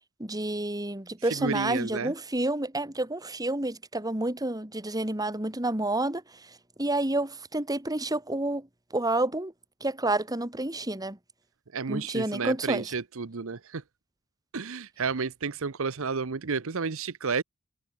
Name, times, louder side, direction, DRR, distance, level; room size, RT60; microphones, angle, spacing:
voice 1, 0.2-6.2 6.8-8.7 8.9-9.5 9.8-11.2 11.9-12.9, right 2 dB, 15° right, 2.5 m, -29 dB
voice 2, 1.2-2.1 11.7-13.8 14.5-17.4, right 5 dB, 70° right, 0.8 m, -31 dB
head